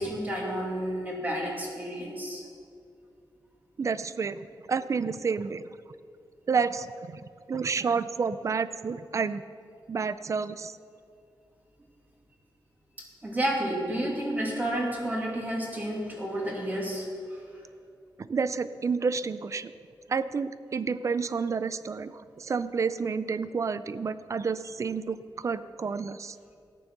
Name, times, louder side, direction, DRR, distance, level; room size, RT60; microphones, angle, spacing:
voice 1, 0.0-2.4 13.0-17.6, right 1 dB, 20° right, -2 dB, 2.5 m, -31 dB
voice 2, 3.8-4.4 4.7-5.6 6.5-7.2 7.5-9.4 9.9-10.7 18.2-19.7 20.1-26.4, right 5 dB, 40° right, 14 dB, 0.4 m, -30 dB
14.0 x 9.7 x 6.0 m, 2.5 s
wide cardioid pair, 135°, 8 cm